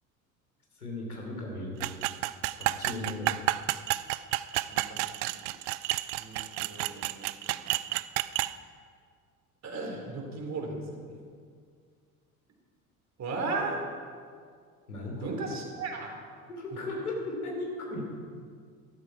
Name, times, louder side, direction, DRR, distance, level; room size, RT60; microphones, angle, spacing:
voice 1, 0.7-1.9 2.6-3.3 14.9-15.3 16.5-18.1, left 2 dB, 85° left, -1 dB, 3.1 m, -36 dB
sound 1, 1.8-8.5, right 17 dB, 60° right, 0.5 m, -30 dB
voice 2, 4.7-5.3 6.2-7.6 9.6-11.1 13.2-13.8 15.2-16.1, right 3 dB, 40° right, 1 dB, 3.4 m, -36 dB
14.0 x 13.0 x 4.7 m, 2.1 s
figure-of-eight pair, 65°, 43 cm